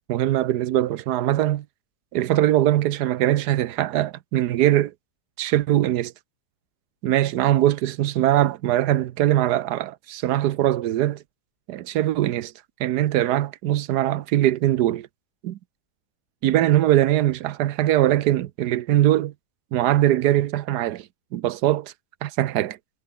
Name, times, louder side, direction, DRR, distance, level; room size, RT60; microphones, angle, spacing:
voice 1, 0.0-1.6 2.1-4.9 5.4-6.1 7.0-11.2 11.7-12.5 12.8-15.1 15.4-15.6 16.4-19.3 19.7-21.1 21.3-21.9 22.2-22.8, right 13 dB, 90° right, 1.3 m, -21 dB
omnidirectional pair, 1.7 m